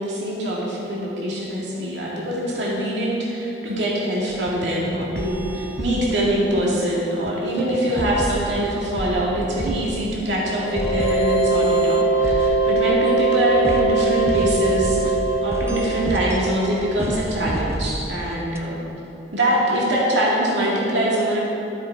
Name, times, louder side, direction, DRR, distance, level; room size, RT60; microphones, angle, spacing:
voice 1, 0.0-15.2 15.4-18.8 19.3-21.5, right 1 dB, 85° right, -5 dB, 2.1 m, -23 dB
sound 1, 4.3-6.7 7.3-7.4 7.6-13.0 13.6-18.6, right 1 dB, 15° right, 0.5 m, -31 dB
sound 2, 10.6-17.2, right 2 dB, 85° left, 2.3 m, -21 dB
13.0 x 7.2 x 4.6 m, 2.8 s
head